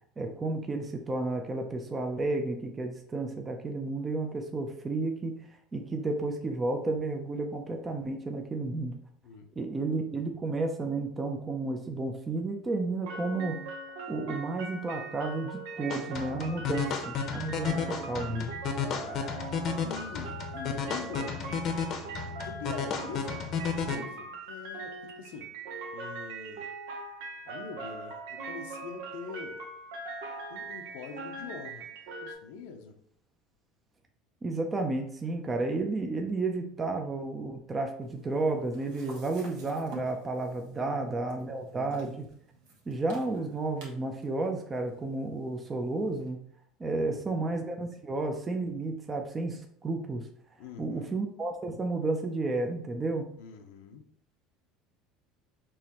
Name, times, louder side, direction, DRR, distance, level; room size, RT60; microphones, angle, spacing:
voice 1, 0.2-5.3 5.7-9.0 9.6-13.6 14.1-18.6 34.4-42.3 42.9-46.4 46.8-50.3 50.8-53.3, right 2 dB, 20° right, 4 dB, 0.5 m, -32 dB
voice 2, 9.2-9.9 18.8-21.6 22.4-25.5 25.9-26.7 27.4-29.6 30.5-31.9 32.2-33.0 40.8-41.5 46.9-47.5 50.6-51.2 53.4-54.0, left 5 dB, 85° left, 4 dB, 0.5 m, -45 dB
sound 1, 13.0-32.3, right 3 dB, 90° right, 0.9 m, -41 dB
sound 2, 15.9-24.0, left 6 dB, 45° left, 0.7 m, -33 dB
sound 3, 38.0-46.3, right 4 dB, 70° right, 1.3 m, -52 dB
4.6 x 3.0 x 2.9 m, 0.64 s
supercardioid pair, 120°, 0 cm